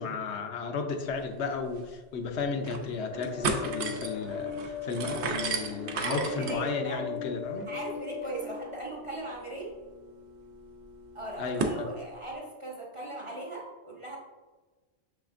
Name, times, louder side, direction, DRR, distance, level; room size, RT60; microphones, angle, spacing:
voice 1, 0.0-7.7 11.4-11.9, left 4 dB, 85° left, 4 dB, 0.9 m, -34 dB
sound 1, 1.4-1.5 1.8-1.9 2.4-2.9 3.2-11.8, right 4 dB, 85° right, 0.9 m, -37 dB
sound 2, 3.1-8.5, left 6 dB, 50° left, 0.6 m, -38 dB
voice 2, 5.9-7.1 7.7-9.7 11.1-14.2, right 2 dB, 35° right, -3 dB, 0.6 m, -38 dB
6.3 x 3.2 x 2.5 m, 1.3 s
omnidirectional pair, 1.1 m